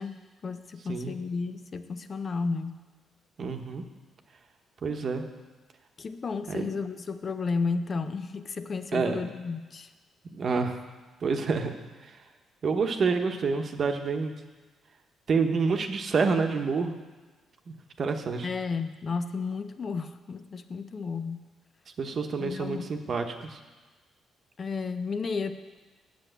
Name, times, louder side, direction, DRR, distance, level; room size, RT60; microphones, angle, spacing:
voice 1, 0.0-2.8 6.0-9.9 18.4-21.5 22.4-22.9 24.6-25.5, left 4 dB, 40° left, 10 dB, 0.6 m, -33 dB
voice 2, 3.4-3.8 4.8-5.3 6.5-6.7 8.9-9.2 10.3-10.8 11.2-11.7 12.0-12.2 12.6-14.3 15.3-17.0 17.7-18.5 22.0-23.6, right 4 dB, 50° right, 5 dB, 1.0 m, -28 dB
7.9 x 6.9 x 8.1 m, 1.3 s
cardioid pair, 90°, 0 cm